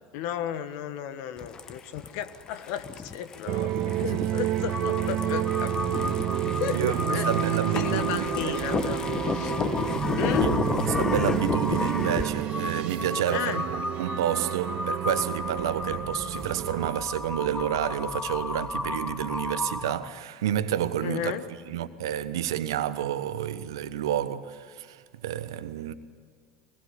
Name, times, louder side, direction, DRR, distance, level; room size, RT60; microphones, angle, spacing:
voice 1, 0.1-5.8 6.4-7.3 7.7-9.5 10.2-10.5 13.3-13.6 21.0-21.4, left 10 dB, 65° left, 1.5 m, -34 dB
sound 1, 1.4-12.2, left 5 dB, 35° left, 1.5 m, -32 dB
sound 2, 3.5-16.9, right 13 dB, 55° right, 1.1 m, -30 dB
Crow, 4.7-20.2, left 3 dB, 10° left, 1.1 m, -34 dB
voice 2, 6.7-8.7 10.4-21.3 21.7-25.9, right 11 dB, 75° right, 1.2 m, -29 dB
22.5 x 20.5 x 8.3 m
hypercardioid pair, 75°, 2 cm